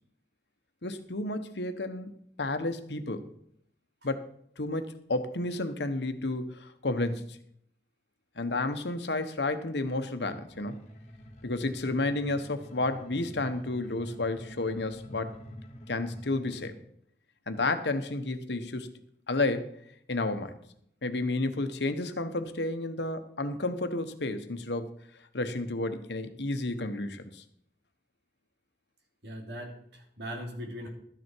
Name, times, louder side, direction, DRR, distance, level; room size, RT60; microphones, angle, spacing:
voice 1, 0.8-3.3 4.0-4.2 4.6-7.4 8.4-10.9 11.4-15.4 15.9-16.8 17.5-18.9 19.3-19.8 20.1-20.5 21.0-24.9 25.3-27.4, left 2 dB, 80° left, 9 dB, 1.2 m, -31 dB
sound 1, 10.5-16.7, equal, 40° left, 1.6 m, -47 dB
voice 2, 29.2-30.9, equal, 75° right, 1 dB, 3.1 m, -40 dB
13.0 x 9.7 x 4.6 m, 0.69 s
head